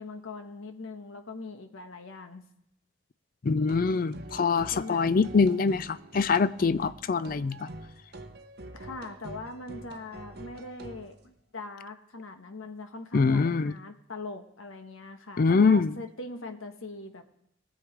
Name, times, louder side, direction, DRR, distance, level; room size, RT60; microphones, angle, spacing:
voice 1, 0.0-2.4 4.7-5.1 8.7-17.2, left 3 dB, 90° left, 1.2 m, -41 dB
voice 2, 3.4-7.7 13.1-13.7 15.4-16.0, left 4 dB, 45° left, 0.4 m, -24 dB
sound 1, 3.7-11.2, right 2 dB, 50° right, 0.7 m, -45 dB
19.0 x 7.3 x 4.9 m
head